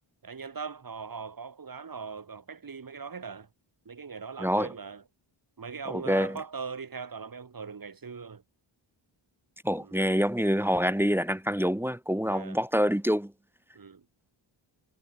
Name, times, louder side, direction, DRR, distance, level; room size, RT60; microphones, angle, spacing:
voice 1, 0.2-3.5 3.9-5.0 5.6-8.4 9.8-10.0 12.2-12.6 13.7-14.0, right 5 dB, 45° right, 3.8 m, -40 dB
voice 2, 4.4-4.7 5.9-6.4 9.6-13.3, equal, 5° right, 0.9 m, -26 dB
wide cardioid pair, 175°, 48 cm